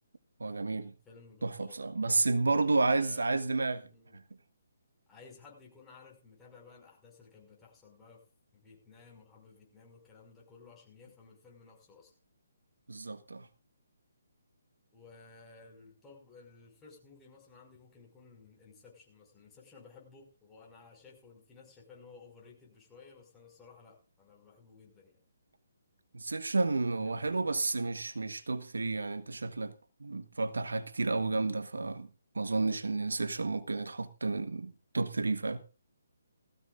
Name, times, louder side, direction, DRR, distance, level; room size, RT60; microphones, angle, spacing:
voice 1, 0.4-0.9 1.4-3.9 12.9-13.5 26.1-29.7 30.0-32.1 32.3-35.6, right 3 dB, 80° right, 1.3 m, -31 dB
voice 2, 1.1-1.8 2.5-3.4 3.9-4.2 5.1-8.2 8.5-12.1 14.9-25.2 27.0-27.6, left 4 dB, 15° left, 5.6 m, -56 dB
19.5 x 16.0 x 2.5 m
figure-of-eight pair, 145°, 0 cm